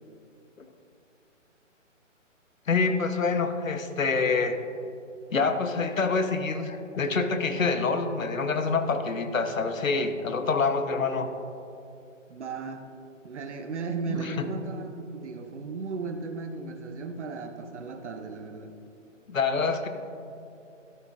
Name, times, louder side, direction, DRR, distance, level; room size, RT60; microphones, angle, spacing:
voice 1, 2.7-4.6 5.3-11.3 14.1-14.3 19.3-19.9, left 4 dB, 90° left, 8 dB, 1.0 m, -26 dB
voice 2, 12.3-12.8 13.2-18.7, right 4 dB, 65° right, 6 dB, 0.9 m, -35 dB
13.0 x 9.0 x 2.5 m, 2.7 s
hypercardioid pair, 160°, 39 cm